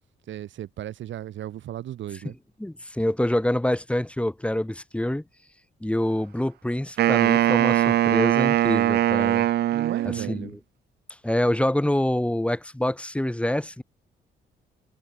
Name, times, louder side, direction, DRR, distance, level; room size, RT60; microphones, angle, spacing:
voice 1, 0.3-2.3 9.7-10.5, right 12 dB, 80° right, 3.1 m, -36 dB
voice 2, 2.6-5.2 5.8-9.5 10.1-10.6 11.2-13.8, left 1 dB, 5° left, 2.3 m, -26 dB
Wind instrument woodwind instrument, 7.0-10.5, right 13 dB, 60° right, 0.4 m, -21 dB
cardioid pair, 90°, 19 cm